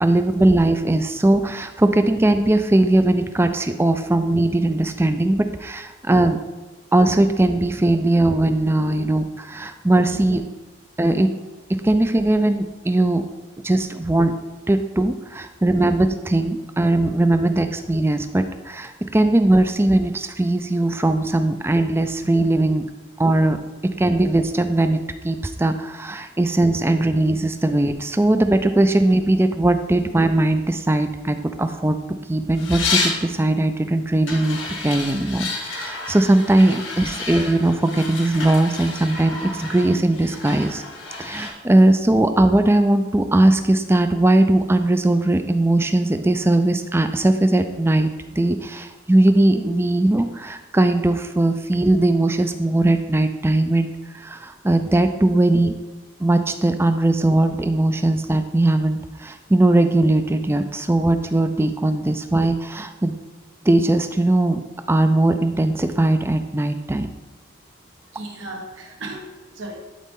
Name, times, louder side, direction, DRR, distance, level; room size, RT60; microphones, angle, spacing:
voice 1, 0.0-6.4 6.9-10.4 11.0-11.3 11.7-13.2 13.6-14.3 14.7-22.8 23.2-23.6 23.8-40.8 41.2-48.1 48.4-55.7 56.2-63.1 63.6-64.6 64.9-67.1, right 1 dB, 10° right, 8 dB, 0.4 m, -19 dB
sound 1, 32.6-33.2 34.3-41.5, left 4 dB, 85° left, 1.6 m, -30 dB
voice 2, 68.1-69.8, right 1 dB, 80° right, 1 dB, 1.5 m, -36 dB
12.5 x 4.1 x 3.7 m, 1.2 s
head